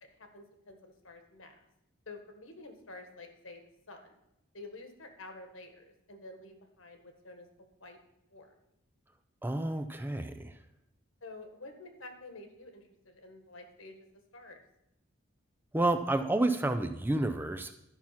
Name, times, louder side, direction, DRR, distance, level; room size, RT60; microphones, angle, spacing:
voice 1, 0.0-1.5 2.1-3.6 3.9-4.2 4.5-8.0 8.3-8.5 11.2-13.9 14.3-14.6, left 2 dB, 75° left, 5 dB, 1.6 m, -49 dB
voice 2, 9.4-10.5 15.7-17.7, right 2 dB, 10° right, 8 dB, 0.4 m, -30 dB
12.0 x 5.8 x 5.9 m, 0.85 s
head